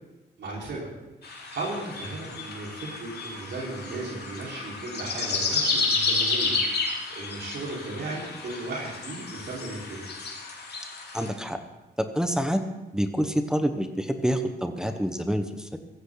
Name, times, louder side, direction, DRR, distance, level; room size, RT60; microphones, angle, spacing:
voice 1, 0.4-0.8 1.5-6.6 7.1-10.0, right 2 dB, 75° right, -5 dB, 5.1 m, -35 dB
sound 1, 1.2-11.3, left 3 dB, 60° left, 3.6 m, -31 dB
voice 2, 11.1-11.6 12.0-12.6 12.9-15.8, equal, 5° right, 6 dB, 1.4 m, -27 dB
16.5 x 14.5 x 4.1 m, 1.1 s
cardioid pair, 65°, 18 cm